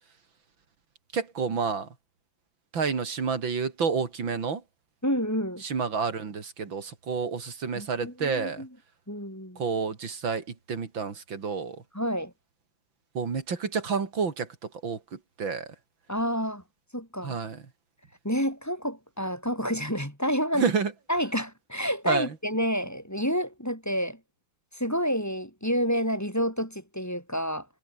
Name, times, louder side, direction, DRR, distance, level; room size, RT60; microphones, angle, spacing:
voice 1, 1.1-1.9 2.7-4.6 5.6-8.7 9.6-11.8 13.2-15.8 17.2-17.6 20.5-20.9 22.1-22.4, right 5 dB, 85° right, 3.5 m, -29 dB
voice 2, 5.0-5.6 7.7-8.7 9.1-9.6 11.9-12.3 16.1-16.6 16.9-17.3 18.2-20.7 21.1-24.2 24.7-27.7, equal, 10° left, 5.1 m, -29 dB
omnidirectional pair, 2.1 m